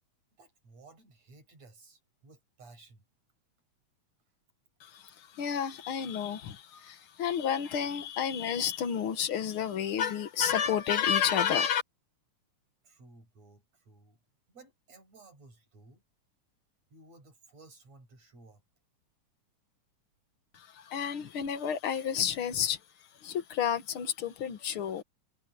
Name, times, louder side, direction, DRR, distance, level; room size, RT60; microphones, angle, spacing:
voice 1, 0.4-3.0 12.8-14.2 14.5-16.0 16.9-18.6, right 3 dB, 55° right, 8.2 m, -56 dB
voice 2, 4.8-11.8 20.5-22.8 23.2-25.0, left 8 dB, 50° left, 1.9 m, -30 dB
omnidirectional pair, 3.6 m